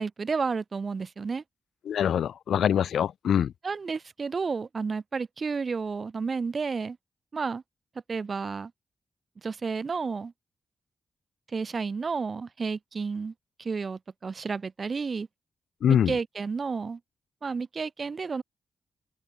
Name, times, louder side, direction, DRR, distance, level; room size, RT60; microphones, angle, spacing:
voice 1, 0.0-1.4 3.6-7.0 7.3-7.6 8.1-8.7 9.4-10.3 11.5-13.3 13.6-15.3 15.9-17.0 17.4-18.4, right 5 dB, 35° right, 4.5 m, -31 dB
voice 2, 1.9-3.5 15.8-16.1, left 9 dB, 90° left, 2.8 m, -24 dB
open air
wide cardioid pair, 145°, 0 cm